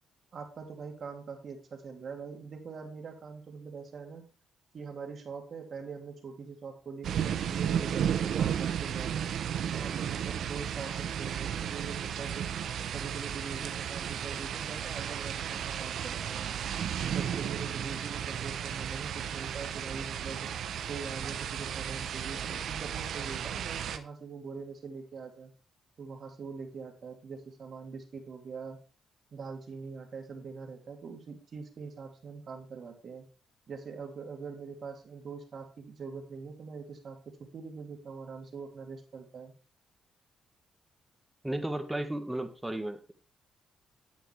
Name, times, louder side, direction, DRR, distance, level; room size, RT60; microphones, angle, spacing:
voice 1, 0.3-4.2 4.7-9.3 9.7-12.5 12.9-16.5 17.0-20.5 20.9-25.5 26.0-28.8 29.3-33.3 33.7-39.5, right 5 dB, 55° right, 2 dB, 2.7 m, -43 dB
sound 1, 7.0-24.0, right 9 dB, 75° right, 0.8 m, -34 dB
voice 2, 41.4-43.1, right 1 dB, 10° right, 7 dB, 1.6 m, -34 dB
9.6 x 8.2 x 3.3 m, 0.36 s
cardioid pair, 75°, 0 cm